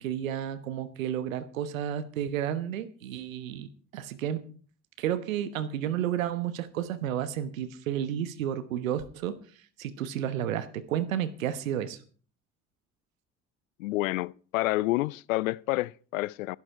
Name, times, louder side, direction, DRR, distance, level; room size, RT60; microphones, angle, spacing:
voice 1, 0.0-4.5 5.0-12.0, right 10 dB, 80° right, 1.1 m, -32 dB
voice 2, 13.8-16.6, left 19 dB, 80° left, 0.5 m, -29 dB
13.0 x 11.5 x 4.6 m
hypercardioid pair, 60°, 40 cm